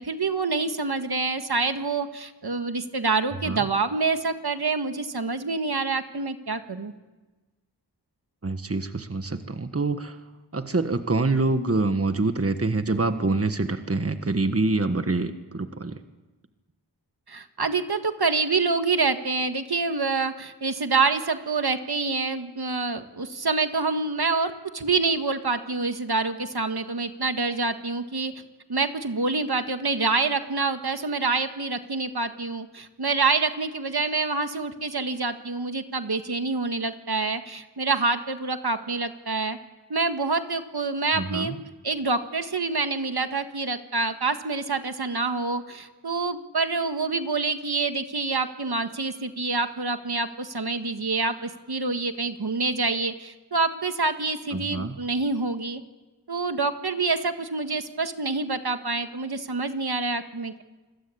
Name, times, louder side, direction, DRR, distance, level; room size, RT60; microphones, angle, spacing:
voice 1, 0.0-6.9 17.3-28.3 28.7-39.6 39.9-41.5 41.8-55.8 56.3-60.6, right 3 dB, 60° right, 7 dB, 1.7 m, -27 dB
voice 2, 8.4-10.2 10.5-16.0 41.2-41.5 54.5-55.0, right 3 dB, 35° right, 8 dB, 1.5 m, -26 dB
28.0 x 21.5 x 8.6 m, 1.2 s
wide cardioid pair, 65°, 42 cm